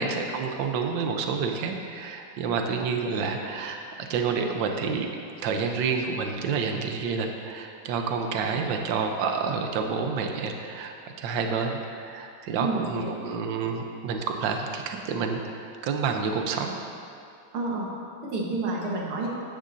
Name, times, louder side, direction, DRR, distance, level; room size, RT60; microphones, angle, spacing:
voice 1, 0.0-5.1 5.4-16.7, right 5 dB, 70° right, 4 dB, 1.4 m, -29 dB
voice 2, 12.6-13.2 17.5-17.9 18.2-19.3, right 2 dB, 85° right, -3 dB, 2.4 m, -30 dB
13.5 x 10.0 x 2.7 m, 2.4 s
omnidirectional pair, 2.3 m